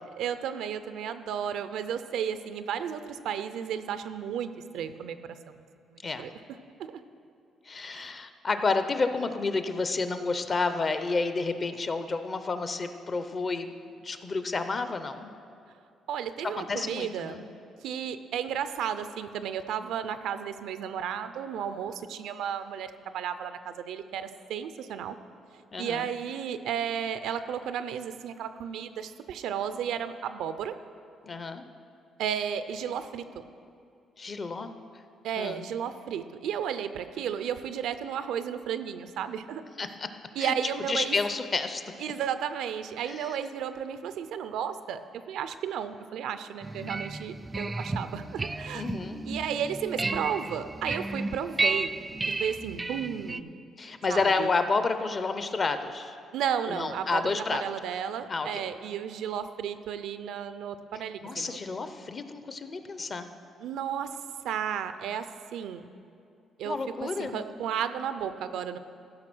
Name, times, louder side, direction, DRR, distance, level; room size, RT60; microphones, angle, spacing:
voice 1, 0.2-5.5 5.9-6.3 6.8-7.0 7.9-8.0 16.1-17.4 17.8-25.2 25.8-30.7 32.2-33.2 35.2-39.6 40.4-41.2 42.0-48.9 49.3-52.0 52.4-53.6 54.1-54.5 56.3-61.6 63.6-64.1 64.4-65.3 65.5-65.8 66.6-68.8, right 8 dB, 85° right, 11 dB, 0.5 m, -33 dB
voice 2, 7.7-13.7 14.0-15.3 16.6-17.5 25.7-26.1 31.2-31.7 34.2-34.7 35.4-35.7 39.8-40.1 40.4-40.5 40.9-41.8 43.0-43.4 48.7-49.2 53.8-56.2 56.7-57.6 58.3-58.6 61.2-63.3 66.6-67.4, left 4 dB, 35° left, 9 dB, 0.6 m, -30 dB
sound 1, 46.6-53.4, right 3 dB, 20° right, 0.3 m, -33 dB
14.5 x 6.0 x 6.1 m, 2.5 s
cardioid pair, 120°, 0 cm